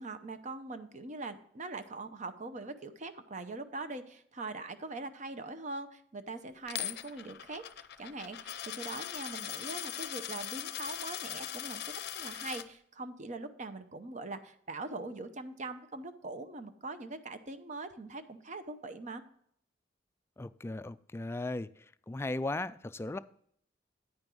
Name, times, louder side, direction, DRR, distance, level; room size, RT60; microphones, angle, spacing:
voice 1, 0.0-19.2, right 3 dB, 40° right, 10 dB, 0.7 m, -42 dB
Coin (dropping), 6.7-12.6, left 11 dB, 60° left, 0.6 m, -40 dB
voice 2, 20.4-21.7 22.1-23.2, left 2 dB, 15° left, 13 dB, 0.3 m, -36 dB
9.6 x 5.3 x 6.1 m, 0.65 s
head